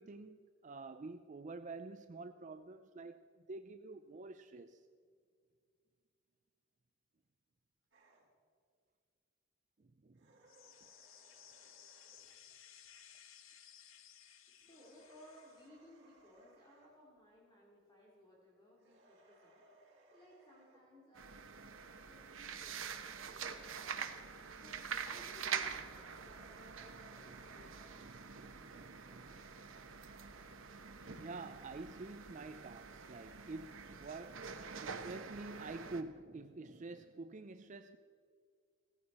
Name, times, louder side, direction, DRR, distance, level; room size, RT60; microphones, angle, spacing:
voice 1, 0.0-3.2 3.5-4.9 9.8-10.3 26.9-27.4 28.0-29.5 31.2-38.0, right 3 dB, 40° right, 0.4 m, -48 dB
sound 1, 7.9-8.3 10.1-12.3 14.6-17.0 18.8-20.8 22.6-24.1 26.1-27.7, right 1 dB, 60° right, 4.7 m, -66 dB
sound 2, 10.5-15.7, left 9 dB, 80° left, 0.9 m, -59 dB
voice 2, 14.5-24.1 24.5-27.8, left 1 dB, 20° left, 2.6 m, -61 dB
sound 3, 21.2-36.0, right 6 dB, 80° right, 1.0 m, -46 dB
17.0 x 15.0 x 4.3 m
head